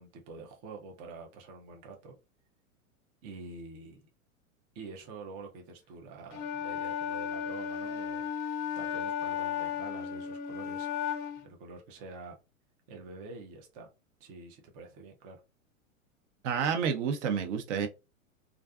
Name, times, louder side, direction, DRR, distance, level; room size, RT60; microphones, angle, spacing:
voice 1, 0.0-2.1 3.2-4.1 4.7-8.3 8.8-10.9 11.4-12.4 12.9-13.9 14.2-15.4, right 3 dB, 20° right, 0.3 m, -47 dB
Wind instrument woodwind instrument, 6.3-11.5, left 8 dB, 35° left, 0.5 m, -34 dB
voice 2, 16.4-17.9, right 7 dB, 60° right, 0.7 m, -29 dB
2.4 x 2.4 x 2.3 m
hypercardioid pair, 115°, 41 cm